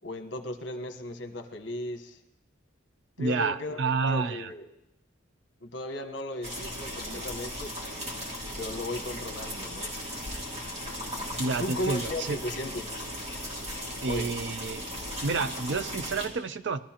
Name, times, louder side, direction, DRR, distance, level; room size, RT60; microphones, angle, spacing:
voice 1, 0.0-2.2 3.2-4.7 5.6-7.7 8.6-9.9 11.6-12.9 14.1-14.3, left 1 dB, 65° left, 8 dB, 1.1 m, -36 dB
voice 2, 3.2-4.5 11.4-12.4 14.0-14.8 15.2-16.8, right 4 dB, 60° right, 13 dB, 0.5 m, -29 dB
sound 1, 6.4-16.3, equal, 30° right, 2.2 m, -37 dB
22.0 x 13.0 x 2.9 m, 0.91 s
head